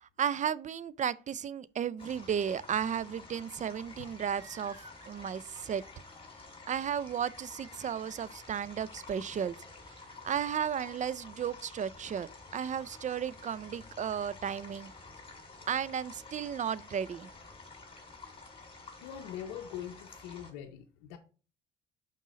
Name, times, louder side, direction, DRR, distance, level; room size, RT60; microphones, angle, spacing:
voice 1, 0.0-5.8 6.7-9.6 10.0-14.9 15.3-15.4 15.7-17.3, right 8 dB, 35° right, 0.4 m, -34 dB
sound 1, 2.0-20.5, left 3 dB, 25° left, 1.9 m, -51 dB
sound 2, 3.8-9.5, right 1 dB, 20° right, 3.2 m, -59 dB
voice 2, 19.0-21.2, left 10 dB, 90° left, 0.6 m, -42 dB
5.5 x 3.8 x 5.0 m
supercardioid pair, 60°, 21 cm